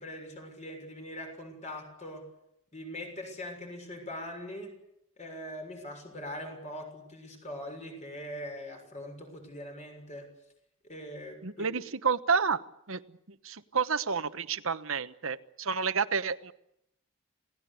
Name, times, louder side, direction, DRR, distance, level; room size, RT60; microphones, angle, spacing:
voice 1, 0.0-2.3 2.7-4.8 5.2-10.3 10.8-11.7, left 1 dB, 35° left, 4 dB, 6.4 m, -42 dB
voice 2, 11.4-12.6 12.9-13.0 13.4-16.5, right 5 dB, 65° right, 11 dB, 1.2 m, -29 dB
27.5 x 18.0 x 8.4 m, 0.80 s
head